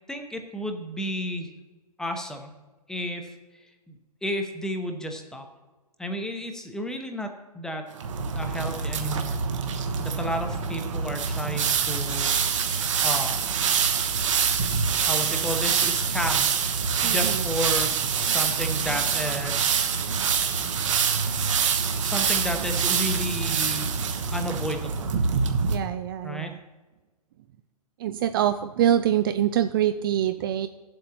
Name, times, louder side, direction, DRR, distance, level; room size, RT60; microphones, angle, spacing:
voice 1, 0.1-1.5 2.0-2.5 2.9-3.3 3.9-4.0 4.2-5.4 6.0-7.9 8.3-9.4 10.0-12.3 13.0-13.5 15.1-16.5 16.9-19.8 22.0-23.9 24.3-25.1 26.2-26.5, equal, 5° left, 5 dB, 0.9 m, -32 dB
sound 1, 8.0-25.8, right 6 dB, 50° right, 1.2 m, -25 dB
voice 2, 17.0-17.4 25.7-26.6 28.0-30.7, right 10 dB, 35° right, 10 dB, 0.4 m, -25 dB
17.5 x 7.7 x 3.0 m, 1.2 s
figure-of-eight pair, 120°, 20 cm